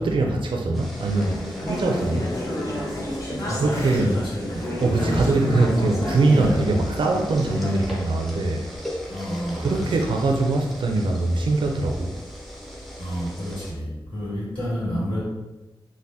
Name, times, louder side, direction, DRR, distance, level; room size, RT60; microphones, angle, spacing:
voice 1, 0.0-1.4 1.7-2.3 3.5-4.2 4.8-8.7 9.6-12.1, right 2 dB, 75° right, 1 dB, 0.4 m, -22 dB
sound 1, 0.7-13.7, equal, ahead, 0.5 m, -39 dB
Conversation / Chatter, 1.1-7.8, equal, 35° left, 0.7 m, -30 dB
voice 2, 3.4-4.6 5.0-5.3 6.3-6.6 9.1-10.0 13.0-15.2, equal, 90° left, -7 dB, 1.2 m, -30 dB
3.4 x 2.1 x 2.7 m, 1.1 s
wide cardioid pair, 115°, 9 cm